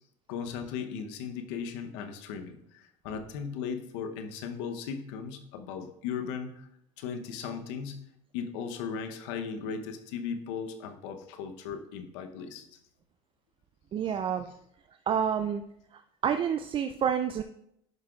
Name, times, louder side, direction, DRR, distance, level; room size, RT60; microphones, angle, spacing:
voice 1, 0.3-6.7 7.0-8.0 8.3-12.7, left 6 dB, 80° left, 7 dB, 0.8 m, -37 dB
voice 2, 13.9-14.5 15.1-15.6 15.9-17.4, right 8 dB, 35° right, 8 dB, 0.4 m, -28 dB
10.5 x 5.8 x 2.4 m, 0.76 s
supercardioid pair, 85°, 15 cm